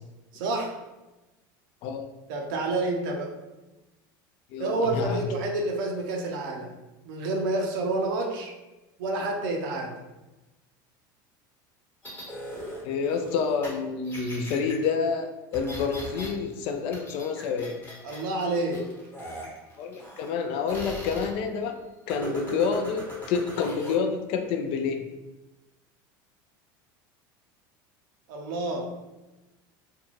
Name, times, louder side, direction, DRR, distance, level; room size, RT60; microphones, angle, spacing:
voice 1, 0.3-0.8 2.3-3.4 4.6-6.7 7.1-8.5 9.0-10.0 18.0-18.9 22.1-22.7 28.3-28.9, right 2 dB, 75° right, 1 dB, 0.5 m, -29 dB
voice 2, 4.5-5.3 12.8-17.7 19.8-21.8 22.1-25.0, left 5 dB, 60° left, 6 dB, 0.4 m, -28 dB
sound 1, 12.0-13.7 14.0-14.9 15.5-16.3 16.6-18.2 18.7-20.4 20.7-21.3 22.1-23.9, equal, 20° left, 1.0 m, -40 dB
2.5 x 2.2 x 3.1 m, 1.1 s
supercardioid pair, 95°, 11 cm